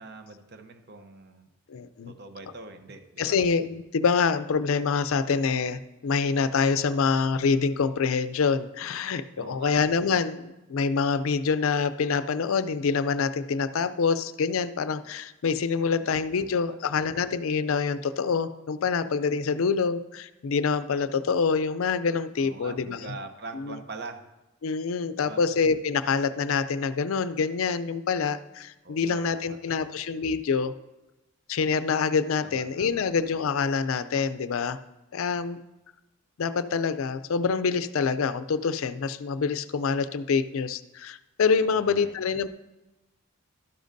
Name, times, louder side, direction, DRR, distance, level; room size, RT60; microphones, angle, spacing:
voice 1, 0.0-1.5 2.1-3.4 9.4-9.7 15.8-16.8 22.4-24.2 25.2-25.4 28.8-30.0 32.4-33.1 41.6-42.1, right 3 dB, 50° right, 8 dB, 0.7 m, -43 dB
voice 2, 1.7-2.1 3.2-23.1 23.5-23.8 24.6-30.7 31.5-34.8 35.1-35.6 36.4-42.5, left 5 dB, 70° left, 13 dB, 0.4 m, -26 dB
12.0 x 10.0 x 2.6 m, 1.0 s
head